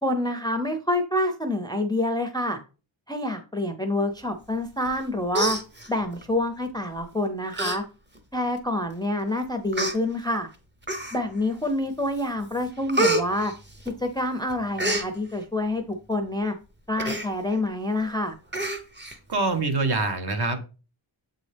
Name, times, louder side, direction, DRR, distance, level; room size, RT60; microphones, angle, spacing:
voice 1, 0.0-2.6 3.1-5.6 5.9-7.8 8.3-10.5 11.1-13.5 14.0-16.5 16.9-18.3, left 1 dB, 10° left, 6 dB, 0.4 m, -27 dB
Human voice, 4.9-5.0 5.3-6.2 7.0-7.1 7.5-7.8 8.2-8.3 9.0-9.1 9.7-10.0 10.8-11.4 11.9-12.2 12.5-14.2 14.5-15.1 17.0-17.3 17.7-17.8 18.0-18.1 18.5-19.2 19.5-19.6, right 1 dB, 20° right, 0.7 m, -27 dB
voice 2, 19.3-20.8, right 3 dB, 50° right, 6 dB, 1.0 m, -25 dB
7.7 x 4.0 x 3.3 m, 0.34 s
wide cardioid pair, 165°, 49 cm